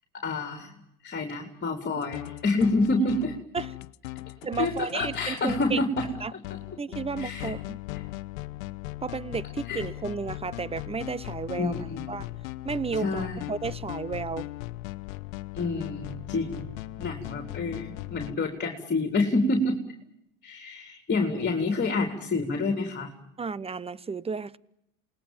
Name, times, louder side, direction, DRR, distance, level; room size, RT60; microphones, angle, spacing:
voice 1, 0.1-0.7 1.0-3.4 4.5-6.1 6.3-6.6 7.2-7.5 9.7-9.8 11.6-12.1 13.0-13.4 15.5-16.7 17.0-19.8 20.4-23.1, left 2 dB, 25° left, 3.6 m, -28 dB
sound 1, 2.0-18.4, left 18 dB, 70° left, 0.9 m, -38 dB
voice 2, 4.4-5.8 6.2-6.3 6.8-7.8 9.0-12.3 12.6-14.5 23.4-24.6, right 5 dB, 15° right, 0.9 m, -33 dB
28.5 x 20.5 x 7.3 m
hypercardioid pair, 100°, 41 cm